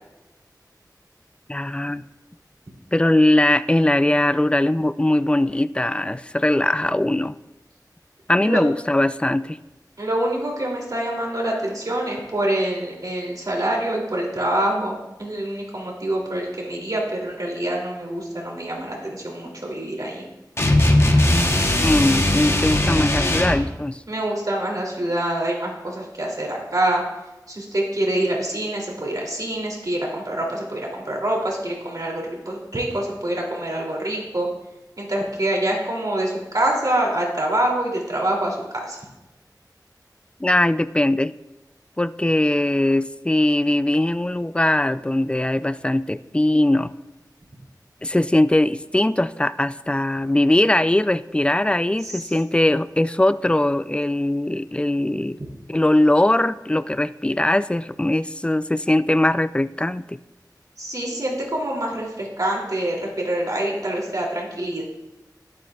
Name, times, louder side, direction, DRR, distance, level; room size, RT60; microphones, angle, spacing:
voice 1, 1.5-2.0 2.9-7.4 8.3-9.6 21.8-24.0 40.4-41.3 42.0-46.9 48.0-55.4 55.7-60.2, left 1 dB, 15° left, 14 dB, 0.3 m, -20 dB
voice 2, 10.0-20.2 24.1-27.0 27.5-34.5 35.0-38.6 38.8-39.0 52.0-52.3 60.8-64.8, right 1 dB, 60° right, -2 dB, 2.8 m, -25 dB
sound 1, 20.6-23.7, left 1 dB, 35° left, 1.0 m, -19 dB
11.5 x 11.5 x 2.4 m, 0.99 s
wide cardioid pair, 65°, 7 cm